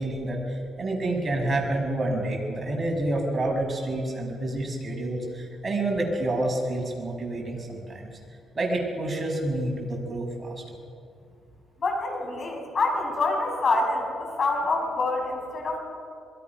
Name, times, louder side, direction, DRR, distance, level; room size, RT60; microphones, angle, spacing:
voice 1, 0.0-8.1 8.5-10.5, right 1 dB, 30° right, 1 dB, 6.6 m, -28 dB
voice 2, 11.8-15.8, left 3 dB, 45° left, 2 dB, 6.7 m, -26 dB
27.0 x 23.0 x 6.1 m, 2.4 s
cardioid pair, 90°, 0 cm